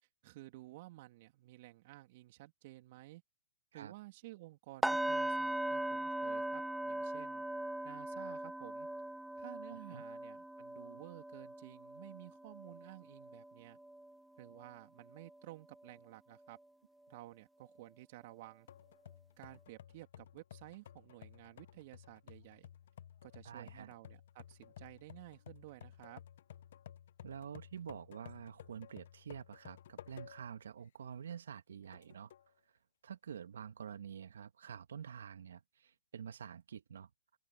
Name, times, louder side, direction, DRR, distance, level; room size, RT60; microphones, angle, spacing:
voice 1, 0.2-3.2 3.7-7.4 7.8-8.9 9.4-13.8 14.4-16.6 17.1-18.7 19.4-22.7 23.2-26.2, right 19 dB, 50° right, 3.1 m, -54 dB
sound 1, 4.8-14.8 15.1-15.4 15.8-15.9, right 1 dB, 5° right, 0.8 m, -40 dB
voice 2, 9.7-10.0 23.4-23.9 27.2-32.3 33.0-37.1, right 8 dB, 75° right, 2.0 m, -48 dB
sound 2, 18.7-30.6 31.1-31.2 31.9-32.5, left 10 dB, 60° left, 1.4 m, -55 dB
open air
hypercardioid pair, 125°, 0 cm